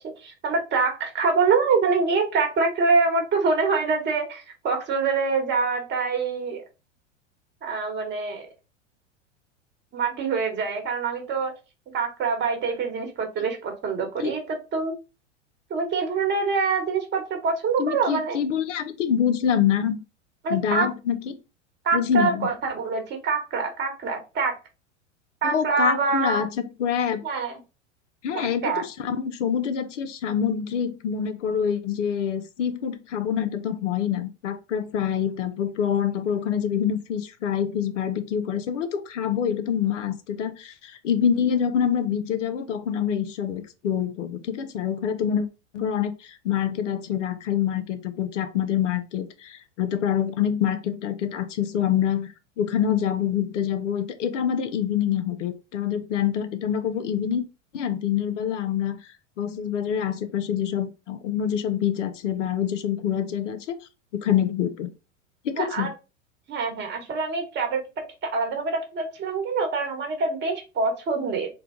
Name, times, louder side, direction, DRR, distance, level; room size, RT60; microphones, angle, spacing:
voice 1, 0.2-6.6 7.6-8.5 9.9-11.5 11.9-14.9 15.7-18.4 20.4-20.9 21.8-24.5 25.4-26.4 27.2-27.6 28.3-28.8 65.5-65.9 66.5-67.8 68.3-71.5, right 4 dB, 30° right, 4 dB, 1.2 m, -25 dB
voice 2, 17.8-20.0 20.5-21.4 21.9-22.5 25.4-27.2 28.2-45.5 45.7-57.4 57.7-59.0 59.4-63.7 64.1-64.9 65.4-65.9, left 8 dB, 75° left, 10 dB, 0.7 m, -26 dB
3.3 x 2.2 x 3.7 m, 0.29 s
hypercardioid pair, 95°, 37 cm